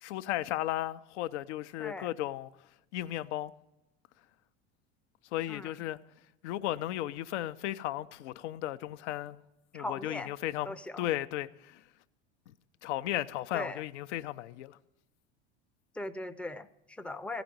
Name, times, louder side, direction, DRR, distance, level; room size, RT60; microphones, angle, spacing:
voice 1, 0.0-2.5 2.9-3.5 5.3-6.0 6.4-9.4 9.7-11.8 12.8-14.8, left 14 dB, 80° left, 0.6 m, -35 dB
voice 2, 1.8-2.1 5.5-5.8 9.7-10.3 10.6-11.1 13.5-13.8 15.9-17.4, left 2 dB, 5° left, 0.4 m, -39 dB
15.0 x 5.0 x 9.2 m
supercardioid pair, 105°, 34 cm